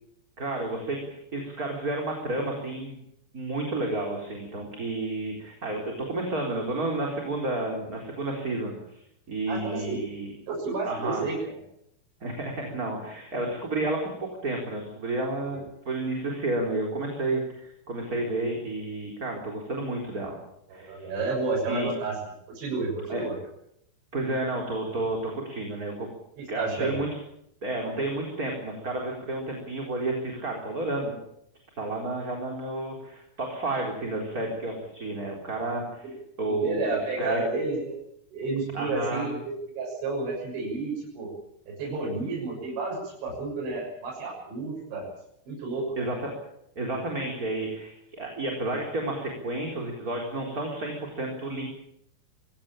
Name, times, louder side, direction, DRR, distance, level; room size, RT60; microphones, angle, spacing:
voice 1, 0.4-3.0 3.3-9.0 9.3-10.3 10.8-11.2 12.2-20.4 20.7-21.1 21.7-21.9 23.1-23.2 24.1-26.1 26.5-27.1 27.6-31.1 31.8-36.1 36.4-37.4 38.7-39.3 46.0-46.3 46.8-51.6, right 2 dB, 20° right, 0 dB, 3.9 m, -31 dB
voice 2, 9.5-10.0 10.5-11.4 15.4-15.6 20.7-22.1 22.5-23.3 26.4-27.0 36.0-36.1 36.5-38.0 38.3-39.4 39.8-41.3 41.8-45.0 45.5-45.9, right 3 dB, 70° right, -4 dB, 9.1 m, -31 dB
23.5 x 17.0 x 8.8 m, 0.76 s
omnidirectional pair, 5.5 m